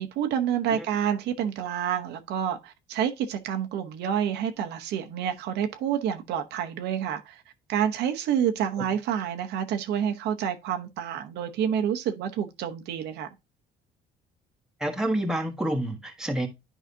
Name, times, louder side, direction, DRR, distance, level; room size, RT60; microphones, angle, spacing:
voice 1, 0.0-7.4 7.7-13.3, right 9 dB, 80° right, 0.9 m, -28 dB
voice 2, 14.8-16.5, right 1 dB, 5° right, 1.4 m, -28 dB
10.0 x 4.9 x 2.7 m
cardioid pair, 110°, 17 cm